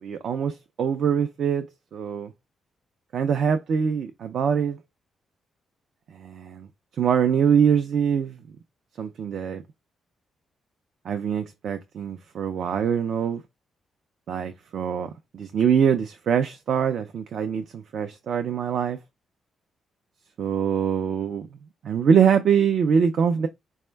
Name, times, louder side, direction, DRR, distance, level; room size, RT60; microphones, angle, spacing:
voice 1, 0.0-2.3 3.1-4.8 6.1-6.7 7.0-8.4 9.0-9.6 11.0-13.4 14.3-19.0 20.4-21.5 21.8-23.5, right 7 dB, 55° right, 0.4 m, -23 dB
4.4 x 2.1 x 3.2 m
wide cardioid pair, 165°, 0 cm